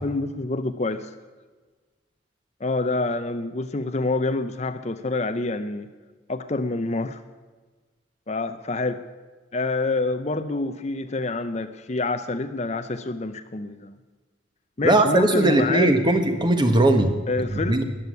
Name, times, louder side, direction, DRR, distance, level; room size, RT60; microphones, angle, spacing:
voice 1, 0.0-1.1 2.6-5.9 6.3-7.2 8.3-9.0 9.5-14.0 14.8-15.9 17.3-17.8, left 3 dB, 35° left, 10 dB, 0.6 m, -27 dB
voice 2, 14.8-17.1 17.5-17.8, right 2 dB, 20° right, 7 dB, 1.4 m, -19 dB
14.0 x 10.0 x 9.4 m, 1.4 s
head